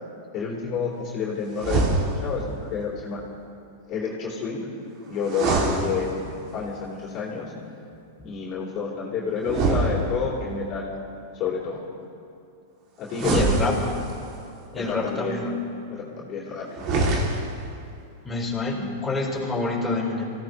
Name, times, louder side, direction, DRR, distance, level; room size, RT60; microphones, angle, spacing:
voice 1, 0.3-1.9 2.2-3.2 3.9-4.6 5.1-7.5 8.2-10.9 11.3-11.8 13.0-13.5 14.7-15.4 15.9-16.7 17.0-17.3, left 6 dB, 40° left, -4 dB, 3.6 m, -29 dB
sound 1, 1.5-2.5 5.2-6.6 9.4-10.6 13.1-14.4 16.7-17.7, right 3 dB, 45° right, 2.8 m, -25 dB
voice 2, 13.2-14.0 14.7-15.5 18.2-20.3, left 3 dB, 10° left, -5 dB, 4.4 m, -27 dB
26.0 x 16.5 x 3.3 m, 2.6 s
hypercardioid pair, 105°, 0 cm